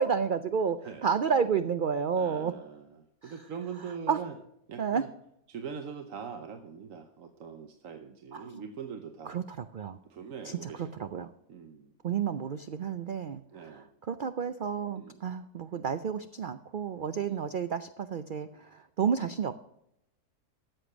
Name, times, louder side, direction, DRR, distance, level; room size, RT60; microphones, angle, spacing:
voice 1, 0.0-2.5 3.2-3.3 4.1-4.2 4.8-5.0 8.3-8.6 9.3-10.0 10.4-11.3 12.0-19.5, right 6 dB, 85° right, 11 dB, 0.4 m, -31 dB
voice 2, 2.1-4.4 4.7-5.1 5.5-9.4 10.0-11.9 13.5-13.9 14.9-15.3 17.1-17.5, right 6 dB, 60° right, 7 dB, 1.2 m, -43 dB
13.0 x 7.8 x 6.2 m, 0.79 s
omnidirectional pair, 1.6 m